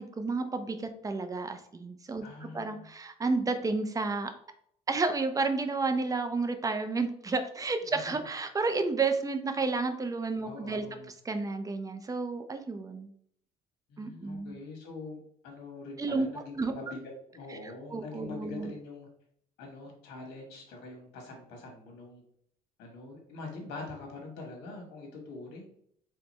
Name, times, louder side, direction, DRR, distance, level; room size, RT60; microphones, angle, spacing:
voice 1, 0.0-4.3 4.9-10.8 11.2-13.1 14.0-14.6 16.0-16.3 16.6-16.7 17.6-18.7, right 3 dB, 20° right, 8 dB, 0.5 m, -31 dB
voice 2, 2.2-2.9 7.9-8.2 10.4-11.1 13.9-17.0 17.3-19.1 19.6-22.2 22.8-25.7, left 3 dB, 90° left, 1 dB, 1.2 m, -44 dB
3.2 x 2.8 x 4.1 m, 0.67 s
cardioid pair, 110°, 17 cm